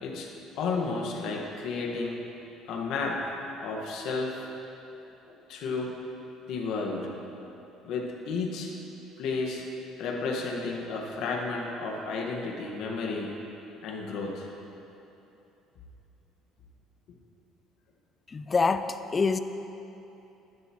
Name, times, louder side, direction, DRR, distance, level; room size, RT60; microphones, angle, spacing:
voice 1, 0.0-2.2 2.7-3.2 3.6-4.5 5.3-5.9 6.5-7.1 7.8-8.7 9.2-9.7 10.0-13.3 13.8-14.5, left 4 dB, 65° left, 0 dB, 1.6 m, -32 dB
voice 2, 18.3-19.4, left 4 dB, 25° left, 10 dB, 0.4 m, -26 dB
14.0 x 10.5 x 3.1 m, 3.0 s
cardioid pair, 130°, 0 cm